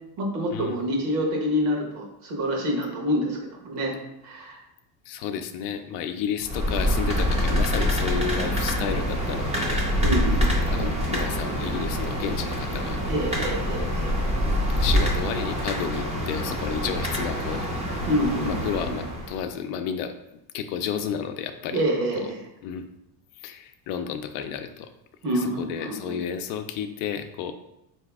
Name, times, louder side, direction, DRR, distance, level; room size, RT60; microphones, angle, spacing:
voice 1, 0.2-3.4 3.6-4.0 4.2-4.6 10.0-10.9 13.1-14.1 18.1-19.0 21.7-22.4 25.2-26.2, equal, 60° right, 1 dB, 1.1 m, -27 dB
voice 2, 5.1-9.8 10.7-13.0 13.7-13.9 14.8-17.7 18.5-20.1 20.5-21.8 22.2-22.3 22.6-22.9 23.4-24.9 25.3-27.5, left 8 dB, 90° left, 7 dB, 0.5 m, -31 dB
sound 1, 6.4-19.4, equal, 15° right, 0.4 m, -26 dB
4.1 x 2.8 x 3.4 m, 0.83 s
cardioid pair, 180°, 47 cm